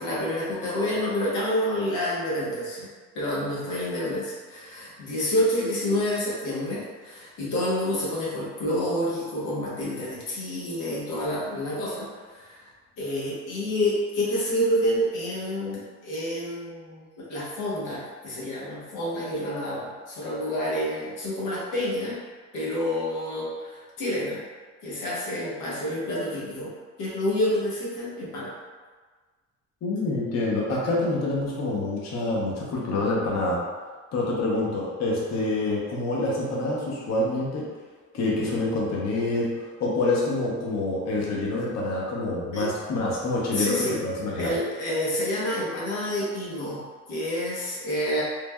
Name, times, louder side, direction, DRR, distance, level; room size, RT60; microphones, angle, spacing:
voice 1, 0.0-2.9 3.1-12.7 13.0-22.2 22.5-24.4 24.8-26.7 27.0-28.6 42.5-42.7 43.5-44.0 44.4-46.8 47.1-48.2, left 1 dB, 90° left, -6 dB, 0.9 m, -28 dB
voice 2, 29.8-33.6 34.1-37.7 38.1-44.5, left 2 dB, 60° left, -4 dB, 0.7 m, -27 dB
3.2 x 2.1 x 2.2 m, 1.4 s
cardioid pair, 90°, 30 cm